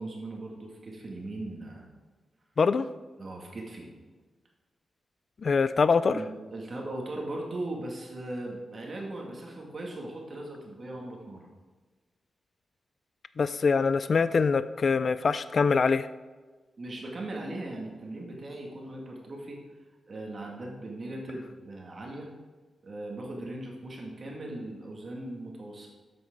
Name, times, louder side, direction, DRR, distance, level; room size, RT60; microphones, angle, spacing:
voice 1, 0.0-1.8 3.2-3.9 6.1-11.5 16.8-19.6 20.1-22.3 22.8-25.9, right 1 dB, 40° right, -1 dB, 2.2 m, -39 dB
voice 2, 5.4-6.2 13.4-16.1, left 5 dB, 45° left, 13 dB, 0.3 m, -24 dB
12.5 x 7.9 x 3.9 m, 1.3 s
wide cardioid pair, 150°, 0 cm